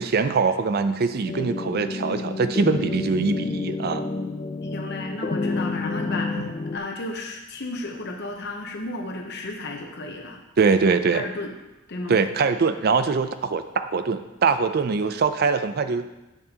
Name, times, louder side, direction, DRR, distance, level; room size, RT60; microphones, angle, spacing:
voice 1, 0.0-4.1 6.4-6.5 10.6-11.2 12.1-16.1, right 4 dB, 50° right, 10 dB, 0.4 m, -23 dB
sound 1, 1.2-6.8, left 3 dB, 30° left, 0.4 m, -29 dB
voice 2, 4.7-6.4 6.7-10.4 10.8-11.5 11.9-12.2, left 2 dB, 60° left, 2 dB, 0.9 m, -33 dB
8.4 x 6.8 x 2.9 m, 0.99 s
head